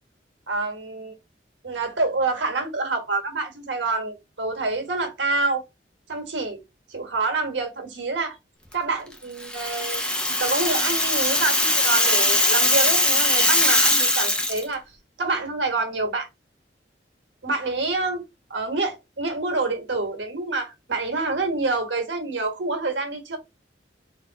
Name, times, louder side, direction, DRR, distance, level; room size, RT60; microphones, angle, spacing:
voice 1, 0.5-1.1 1.6-5.6 6.1-6.6 6.9-8.4 8.7-10.0 10.4-14.8 15.2-16.3 17.4-18.2 18.5-23.4, right 3 dB, 85° right, 1.5 m, -27 dB
Rattle (instrument), 9.4-14.6, left 1 dB, 5° left, 0.8 m, -21 dB
3.9 x 2.7 x 4.1 m
head